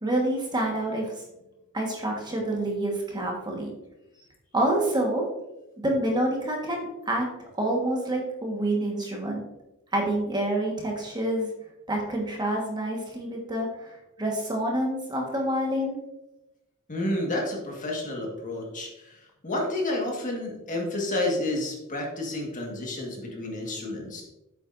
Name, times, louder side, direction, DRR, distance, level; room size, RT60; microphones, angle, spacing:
voice 1, 0.0-1.1 1.7-3.7 4.5-5.3 5.8-7.3 7.6-9.4 9.9-11.5 11.9-16.0, right 1 dB, 20° right, 0 dB, 1.4 m, -27 dB
voice 2, 16.9-19.1 19.4-24.2, left 1 dB, 40° left, 0 dB, 1.7 m, -30 dB
8.5 x 7.7 x 2.6 m, 0.96 s
head